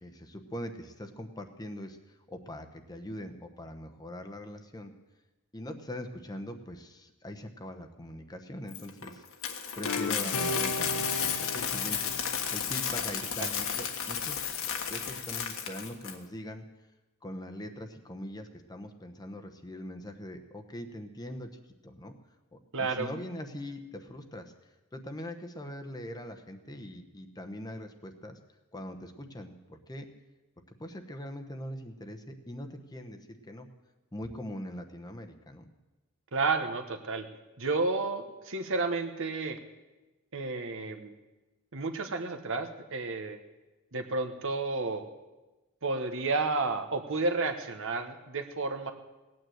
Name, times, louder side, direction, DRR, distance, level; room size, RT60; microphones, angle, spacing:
voice 1, 0.0-4.9 5.5-9.2 9.8-14.5 14.9-16.6 17.2-21.5 21.8-22.1 22.5-24.5 24.9-28.4 28.7-30.1 30.8-33.7 34.1-35.7, left 1 dB, 20° left, 5 dB, 1.0 m, -42 dB
Coin (dropping), 8.7-16.1, left 7 dB, 65° left, 1.5 m, -33 dB
sound 1, 9.8-13.3, left 2 dB, 90° left, 0.8 m, -36 dB
voice 2, 22.7-23.1 36.3-37.3 37.6-39.6 40.3-41.1 41.7-43.4 43.9-45.0 45.8-48.9, right 3 dB, 60° right, 7 dB, 1.3 m, -31 dB
18.0 x 9.3 x 7.8 m, 1.1 s
head